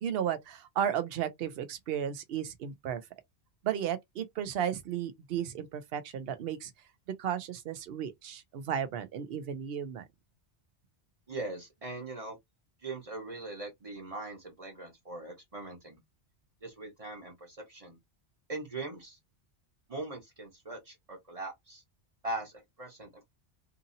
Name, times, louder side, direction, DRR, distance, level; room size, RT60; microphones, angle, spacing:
voice 1, 0.0-3.0 3.6-6.7 7.2-10.1, right 9 dB, 65° right, 0.8 m, -34 dB
voice 2, 11.3-12.4 12.8-16.0 16.6-18.0 18.5-19.2 19.9-21.8 22.2-23.3, right 2 dB, 30° right, 1.2 m, -41 dB
2.8 x 2.6 x 2.6 m
omnidirectional pair, 1.2 m